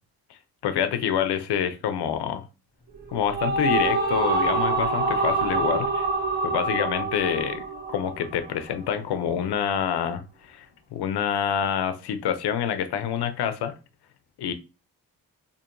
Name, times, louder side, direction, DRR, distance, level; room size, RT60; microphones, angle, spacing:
voice 1, 0.6-2.4 3.1-6.1 6.4-7.6 7.9-10.2 10.5-10.7 10.9-13.7 14.4-14.5, left 8 dB, 85° left, 0.6 m, -26 dB
sound 1, 2.9-8.4, right 3 dB, 25° right, 1.4 m, -26 dB
4.6 x 2.7 x 2.6 m
cardioid pair, 75°, 38 cm